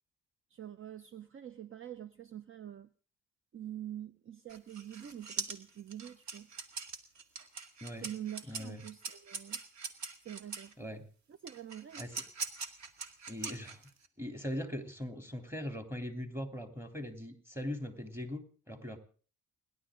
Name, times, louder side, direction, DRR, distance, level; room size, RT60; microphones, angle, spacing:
voice 1, 0.5-2.9 3.5-6.5 8.0-9.6 10.2-10.9 11.3-12.1, right 11 dB, 45° right, 13 dB, 0.8 m, -45 dB
sound 1, 4.5-10.7 11.5-14.1, right 5 dB, 65° right, 2.0 m, -42 dB
voice 2, 8.5-8.8 10.8-11.0 12.0-12.1 13.3-13.8 14.2-19.0, left 1 dB, 10° right, 5 dB, 3.3 m, -40 dB
29.5 x 11.5 x 3.8 m, 0.42 s
cardioid pair, 90°, 30 cm